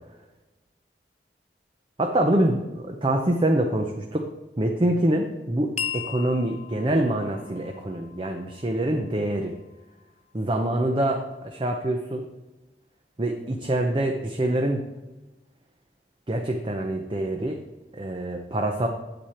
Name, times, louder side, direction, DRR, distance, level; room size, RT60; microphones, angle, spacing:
voice 1, 2.0-4.2 4.6-9.5 10.3-12.2 13.2-14.8 16.3-17.6 17.9-18.9, right 1 dB, 30° right, 3 dB, 0.7 m, -25 dB
sound 1, 5.8-10.4, left 9 dB, 40° left, 0.8 m, -38 dB
8.7 x 7.9 x 4.4 m, 1.1 s
head